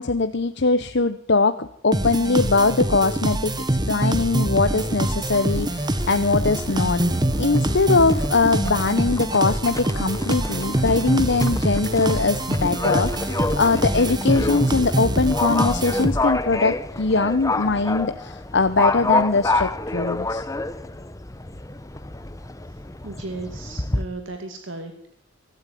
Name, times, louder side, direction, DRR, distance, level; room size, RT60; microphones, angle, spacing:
voice 1, 0.0-7.0 7.4-20.4, left 3 dB, 60° left, 10 dB, 0.9 m, -21 dB
sound 1, 1.9-16.5, right 1 dB, 20° right, 1.5 m, -24 dB
Livestock farm animals working animals, 4.7-24.0, left 2 dB, 15° left, 0.9 m, -29 dB
voice 2, 23.0-25.1, right 2 dB, 65° right, 5 dB, 2.5 m, -35 dB
24.0 x 13.0 x 9.3 m, 0.69 s
head